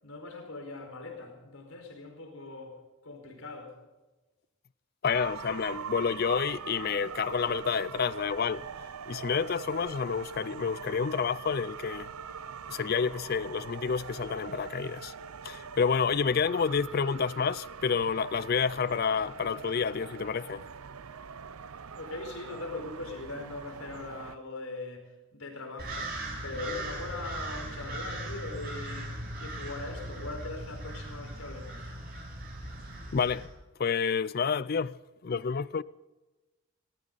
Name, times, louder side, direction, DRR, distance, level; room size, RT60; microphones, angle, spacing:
voice 1, 0.0-3.8 22.0-32.0, left 2 dB, 80° left, 4.9 m, -41 dB
voice 2, 5.0-8.7 9.1-12.1 12.7-15.1 15.4-20.6 33.1-33.5 33.8-35.0 35.2-35.8, left 6 dB, 45° left, 0.4 m, -29 dB
sound 1, 5.1-24.4, right 6 dB, 90° right, 0.7 m, -42 dB
sound 2, 25.8-33.5, right 1 dB, 45° right, 5.8 m, -39 dB
18.5 x 18.5 x 4.0 m
head